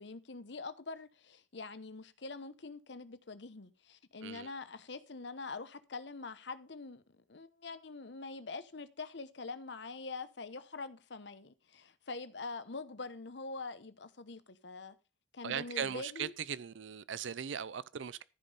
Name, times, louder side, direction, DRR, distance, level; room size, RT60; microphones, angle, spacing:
voice 1, 0.0-14.9 15.3-16.3, left 3 dB, 65° left, 0.9 m, -44 dB
voice 2, 15.4-18.2, right 7 dB, 80° right, 0.5 m, -39 dB
14.5 x 5.3 x 5.4 m
head